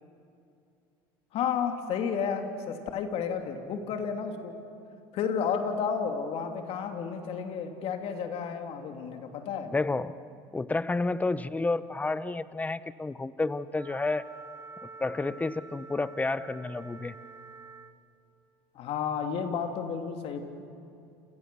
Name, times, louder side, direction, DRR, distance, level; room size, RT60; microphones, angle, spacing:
voice 1, 1.3-4.6 5.1-9.7 18.7-20.4, left 6 dB, 60° left, 5 dB, 2.9 m, -32 dB
voice 2, 9.7-10.2 10.5-14.2 15.0-17.2, left 3 dB, 15° left, 16 dB, 0.8 m, -30 dB
Wind instrument woodwind instrument, 13.7-18.0, right 4 dB, 25° right, 1.3 m, -47 dB
28.5 x 28.5 x 7.0 m, 2.6 s
supercardioid pair, 95°, 11 cm